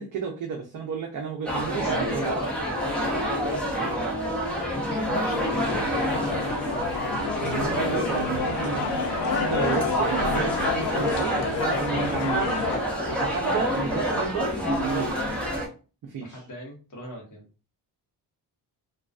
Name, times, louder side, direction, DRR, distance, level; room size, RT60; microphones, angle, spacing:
voice 1, 0.0-2.3 7.4-11.4 11.7-15.2 16.0-16.4, right 5 dB, 50° right, 0 dB, 0.5 m, -32 dB
sound 1, 1.4-15.7, equal, 5° left, 0.5 m, -27 dB
voice 2, 1.7-4.2 4.8-6.8 7.4-7.7 16.2-17.5, equal, 45° left, 0 dB, 1.0 m, -40 dB
sound 2, 5.3-12.8, left 6 dB, 85° left, 0.5 m, -30 dB
2.4 x 2.2 x 2.3 m, 0.34 s
wide cardioid pair, 170°, 41 cm